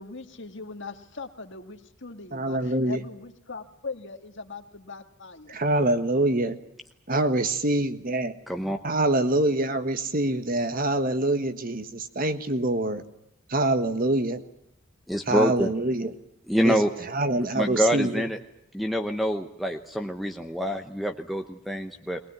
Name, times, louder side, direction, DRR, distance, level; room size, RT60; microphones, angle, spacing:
voice 1, 0.0-5.6, left 3 dB, 55° left, 6 dB, 1.9 m, -40 dB
voice 2, 2.3-3.0 5.5-6.6 7.1-8.3 8.8-13.0 13.5-14.4 15.3-16.1 16.6-18.3, right 2 dB, 40° right, 10 dB, 1.4 m, -25 dB
voice 3, 8.5-8.8 15.1-15.7 16.5-16.9 17.6-18.4 18.7-22.2, equal, ahead, 6 dB, 0.9 m, -26 dB
21.0 x 19.5 x 9.5 m, 0.78 s
head